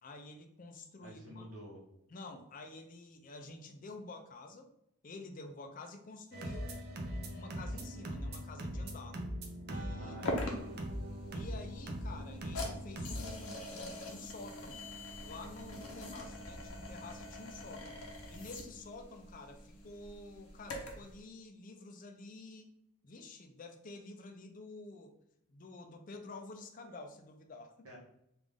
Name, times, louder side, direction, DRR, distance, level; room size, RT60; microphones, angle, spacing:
voice 1, 0.0-1.5 2.1-4.7 5.0-6.8 7.0-9.2 9.7-10.4 11.3-14.8 15.2-18.0 18.3-22.7 23.0-25.2 25.5-27.7, left 2 dB, 35° left, 6 dB, 0.4 m, -49 dB
voice 2, 1.0-1.8 10.0-10.9 27.8-28.0, equal, 75° right, -4 dB, 1.1 m, -50 dB
sound 1, 6.3-13.4, equal, 45° right, 0.5 m, -41 dB
sound 2, 10.3-21.1, left 1 dB, 75° left, 0.8 m, -44 dB
3.4 x 2.5 x 3.4 m, 0.80 s
head